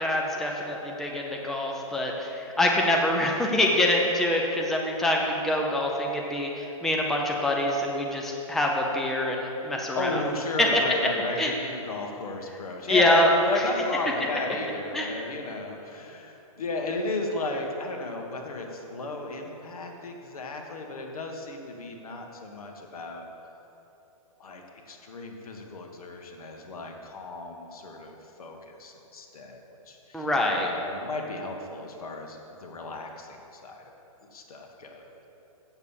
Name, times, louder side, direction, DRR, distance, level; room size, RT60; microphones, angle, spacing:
voice 1, 0.0-10.2 10.6-10.8 11.4-11.5 12.9-13.3 14.9-15.1 30.1-30.7, left 1 dB, ahead, -1 dB, 0.6 m, -25 dB
voice 2, 9.9-23.3 24.4-29.6 29.9-33.8 34.3-35.3, left 2 dB, 80° left, 2 dB, 1.7 m, -34 dB
8.0 x 7.1 x 7.3 m, 3.0 s
hypercardioid pair, 155°, 18 cm